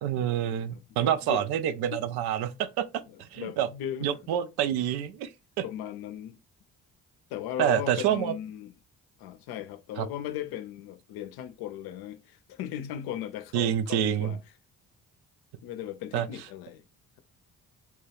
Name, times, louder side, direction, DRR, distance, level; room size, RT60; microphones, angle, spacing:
voice 1, 0.0-3.7 4.0-5.3 5.6-5.7 7.6-8.3 10.0-10.1 13.5-14.3 16.1-16.3, right 10 dB, 65° right, 0.5 m, -27 dB
voice 2, 0.7-1.4 3.1-4.2 5.6-6.4 7.3-8.7 9.2-14.4 15.6-16.8, left 11 dB, 60° left, 0.5 m, -37 dB
2.8 x 2.2 x 3.2 m
hypercardioid pair, 40°, 43 cm